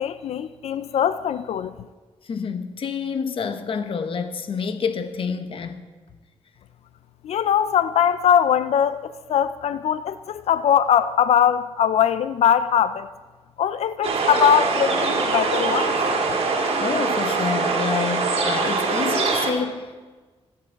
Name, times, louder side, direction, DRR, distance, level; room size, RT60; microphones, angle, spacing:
voice 1, 0.0-1.7 7.2-13.1 13.6-16.0, left 8 dB, 75° left, 0.5 m, -21 dB
voice 2, 2.2-5.8 16.8-20.0, left 5 dB, 55° left, 1.1 m, -28 dB
sound 1, 14.0-19.5, right 4 dB, 65° right, 2.8 m, -23 dB
26.0 x 9.5 x 4.6 m
cardioid pair, 85°, 11 cm